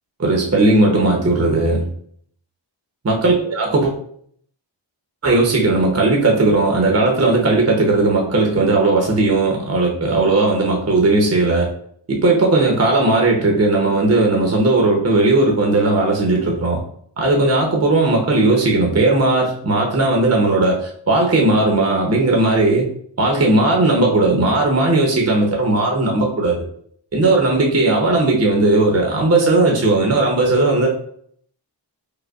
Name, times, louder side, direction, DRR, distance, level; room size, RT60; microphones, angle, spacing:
voice 1, 0.2-1.9 3.0-3.9 5.2-11.7 12.1-16.8 17.2-22.9 23.2-26.6 27.1-30.9, right 2 dB, 35° right, -1 dB, 0.7 m, -16 dB
4.8 x 2.1 x 2.3 m, 0.63 s
wide cardioid pair, 45°, 46 cm